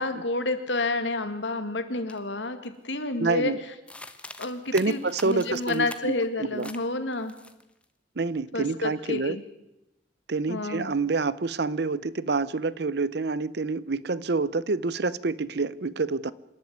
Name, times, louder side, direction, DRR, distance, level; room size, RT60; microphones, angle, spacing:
voice 1, 0.0-3.5 4.4-5.0 5.2-7.3 8.5-9.4 10.5-10.9, left 2 dB, 80° left, 2.3 m, -29 dB
sound 1, 2.1-2.2 2.6-3.0 3.9-6.2 6.6-6.8 7.1-7.8, left 2 dB, 5° left, 1.2 m, -43 dB
voice 2, 3.2-3.6 4.7-6.7 8.2-9.4 10.3-16.3, right 3 dB, 60° right, 0.7 m, -27 dB
26.5 x 11.5 x 9.5 m
head